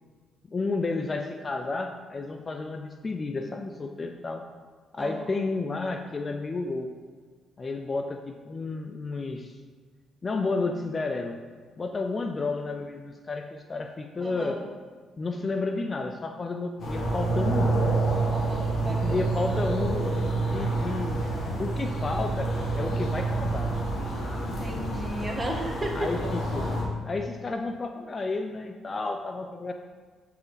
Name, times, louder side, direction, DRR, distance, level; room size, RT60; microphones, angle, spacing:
voice 1, 0.5-4.5 4.9-6.9 7.6-9.6 10.2-11.4 11.8-14.6 15.2-17.8 18.8-20.1 20.5-21.3 21.6-23.7 25.9-26.7 27.1-29.7, left 3 dB, 35° left, 5 dB, 0.5 m, -31 dB
voice 2, 14.2-14.6 18.3-19.2 24.3-26.1, right 1 dB, 20° right, 0 dB, 1.7 m, -34 dB
sound 1, 16.8-26.8, right 2 dB, 60° left, 2.0 m, -28 dB
8.2 x 5.6 x 4.1 m, 1.5 s
cardioid pair, 90°, 0 cm